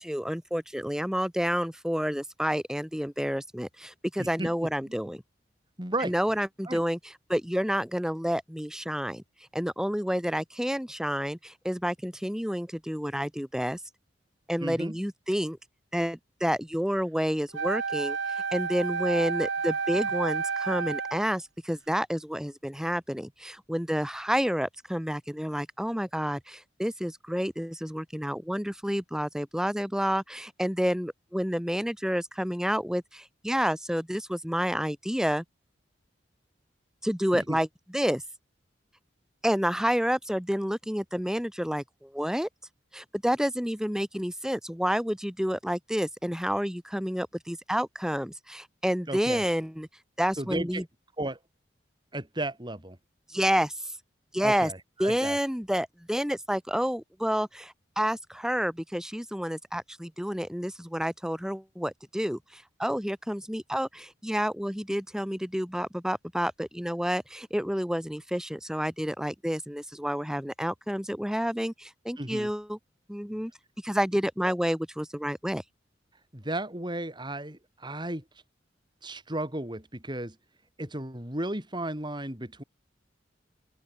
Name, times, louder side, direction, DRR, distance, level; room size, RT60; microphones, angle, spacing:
voice 1, 0.0-5.2 6.0-7.0 7.3-9.2 9.5-13.8 14.5-15.6 15.9-18.2 18.5-35.4 37.0-37.7 37.9-38.2 39.4-42.5 42.9-49.9 50.2-50.8 53.3-53.7 54.3-54.7 55.0-72.8 73.1-73.5 73.8-75.6, equal, 5° right, 3.2 m, -29 dB
voice 2, 4.2-4.5 5.8-6.1 6.7-6.8 14.6-15.0 37.3-37.6 49.1-49.4 50.4-50.8 51.2-51.4 52.1-53.0 54.4-55.4 72.2-72.5 74.4-74.5 76.3-78.2 79.0-80.4 80.8-82.6, right 1 dB, 25° right, 6.0 m, -34 dB
Wind instrument woodwind instrument, 17.5-21.3, right 5 dB, 85° right, 1.0 m, -30 dB
open air
head